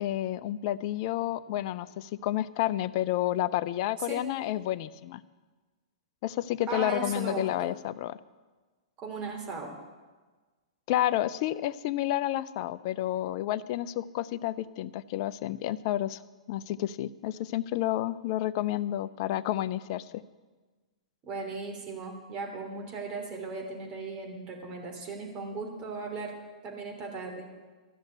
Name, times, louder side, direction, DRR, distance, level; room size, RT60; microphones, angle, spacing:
voice 1, 0.0-5.2 6.2-8.2 10.9-16.2 16.5-20.2, left 13 dB, 45° left, 16 dB, 0.5 m, -30 dB
voice 2, 6.7-7.7 9.0-9.7 21.3-26.3 26.6-27.5, right 3 dB, 30° right, 2 dB, 3.0 m, -37 dB
13.5 x 6.5 x 9.4 m, 1.3 s
figure-of-eight pair, 110°, 4 cm